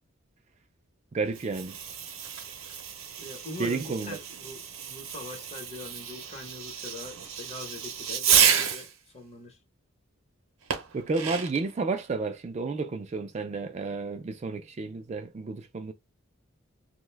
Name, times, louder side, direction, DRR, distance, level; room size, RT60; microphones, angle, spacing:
voice 1, 1.1-1.8 3.6-4.2 10.9-15.9, right 3 dB, 35° right, 0.3 m, -31 dB
Fireworks, 1.2-8.9 10.7-11.7, right 8 dB, 80° right, 0.7 m, -30 dB
voice 2, 3.2-9.6, left 2 dB, 30° left, 0.9 m, -43 dB
2.6 x 2.1 x 3.2 m
head